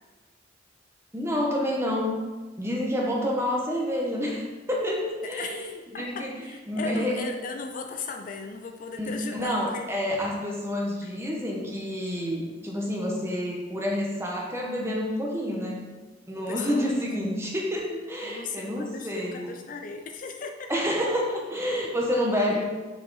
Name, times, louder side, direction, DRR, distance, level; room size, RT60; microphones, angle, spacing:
voice 1, 1.1-2.2 2.6-5.7 5.9-6.3 6.7-7.1 9.0-15.9 16.3-19.5 20.7-22.7, equal, 15° right, -2 dB, 1.1 m, -28 dB
voice 2, 5.2-9.9 11.0-11.2 16.3-17.3 18.2-20.7 22.5-22.6, left 4 dB, 45° left, 4 dB, 0.4 m, -37 dB
6.3 x 5.0 x 4.0 m, 1.3 s
head